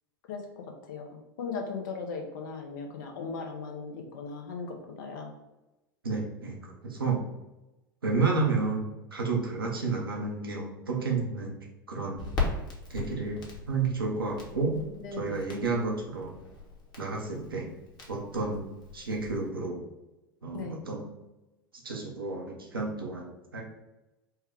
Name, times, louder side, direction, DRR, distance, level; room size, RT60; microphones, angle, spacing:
voice 1, 0.3-5.3 15.0-15.4 20.5-20.8, left 4 dB, 65° left, 3 dB, 0.8 m, -38 dB
voice 2, 6.0-6.6 6.8-7.2 8.0-11.6 11.9-12.2 12.9-14.8 15.1-16.3 17.0-17.7 18.1-19.8 20.4-21.1 21.8-23.3 23.5-23.6, right 4 dB, 85° right, 0 dB, 0.8 m, -31 dB
Crackle, 12.2-19.5, left 4 dB, 35° left, 1.1 m, -39 dB
4.5 x 2.3 x 3.3 m, 1.0 s
figure-of-eight pair, 80°, 12 cm